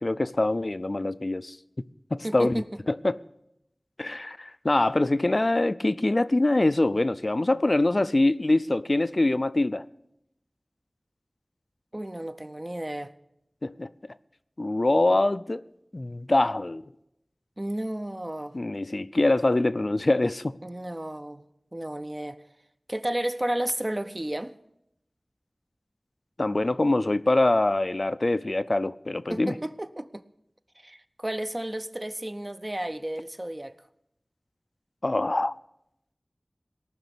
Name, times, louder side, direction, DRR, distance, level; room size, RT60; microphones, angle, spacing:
voice 1, 0.0-1.6 2.1-3.2 4.0-9.9 13.6-13.9 14.6-15.6 15.9-16.8 18.5-20.5 26.4-29.6 35.0-35.5, left 2 dB, 55° left, 0.4 m, -24 dB
voice 2, 2.2-2.6 11.9-13.1 17.6-18.6 20.6-21.4 21.7-22.4 22.9-24.5 29.3-30.2 30.8-33.8, right 1 dB, 30° right, 0.6 m, -32 dB
18.0 x 6.0 x 8.2 m
wide cardioid pair, 45°, 0 cm